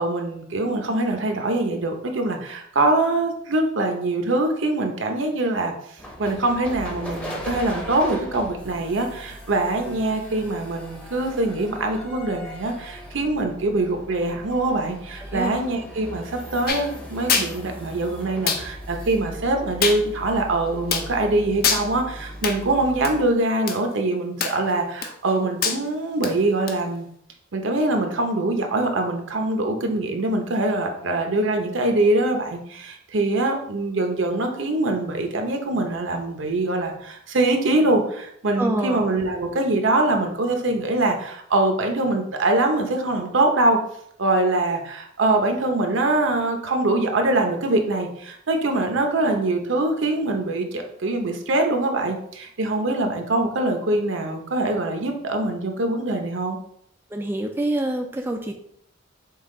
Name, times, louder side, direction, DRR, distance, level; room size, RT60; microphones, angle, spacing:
voice 1, 0.0-5.7 6.2-27.1 27.5-43.8 44.2-56.6, right 2 dB, 70° right, 4 dB, 0.7 m, -23 dB
sound 1, 6.0-23.3, equal, 5° left, 0.7 m, -38 dB
voice 2, 15.2-15.5 38.6-39.1 57.1-58.5, right 1 dB, 10° right, 2 dB, 0.3 m, -26 dB
sound 2, 16.7-16.8 17.3-17.5 18.5-18.6 19.8-20.0 20.9-21.1 21.6-21.8 22.4-22.6 23.0-23.1 23.7-23.8 24.4-24.7 25.0-25.3 25.6-25.8 26.2-26.3 26.7-26.8, left 6 dB, 50° left, 0.6 m, -23 dB
5.5 x 2.4 x 3.7 m, 0.69 s
head